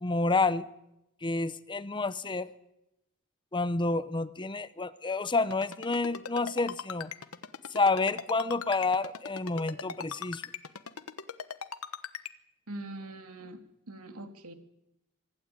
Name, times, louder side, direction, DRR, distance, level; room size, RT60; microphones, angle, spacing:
voice 1, 0.0-0.7 1.2-2.5 3.5-7.1 7.7-10.4, left 3 dB, 20° left, 15 dB, 0.8 m, -29 dB
Ringtone, 5.5-12.3, left 6 dB, 80° left, 1.2 m, -39 dB
voice 2, 12.7-14.5, right 1 dB, 85° right, 6 dB, 2.6 m, -43 dB
25.0 x 15.5 x 9.0 m, 0.86 s
head